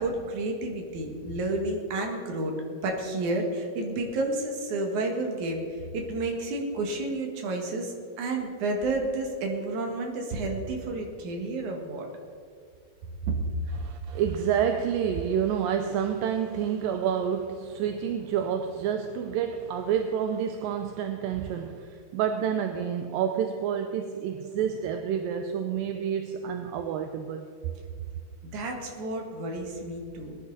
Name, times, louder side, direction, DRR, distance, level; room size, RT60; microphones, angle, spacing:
voice 1, 0.0-12.1 13.3-13.4 28.4-30.4, right 2 dB, 55° right, 2.8 m, -31 dB
voice 2, 13.8-27.5, right 8 dB, 80° right, 2.2 m, -29 dB
20.5 x 10.5 x 4.0 m
omnidirectional pair, 4.4 m